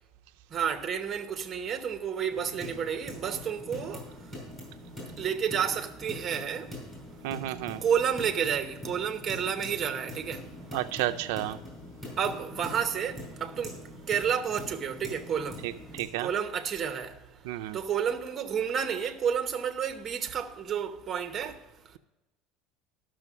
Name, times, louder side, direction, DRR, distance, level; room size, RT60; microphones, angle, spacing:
voice 1, 0.5-4.0 5.2-6.7 7.8-10.4 12.2-13.7 14.1-15.6 16.2-17.1 17.7-21.6, right 8 dB, 20° right, 0.8 m, -30 dB
sound 1, 2.3-16.0, left 1 dB, 10° left, 4.6 m, -43 dB
voice 2, 7.2-7.8 10.7-11.6 15.6-16.3 17.5-17.8, right 15 dB, 75° right, 0.4 m, -32 dB
12.5 x 6.2 x 6.0 m
cardioid pair, 180°, 0 cm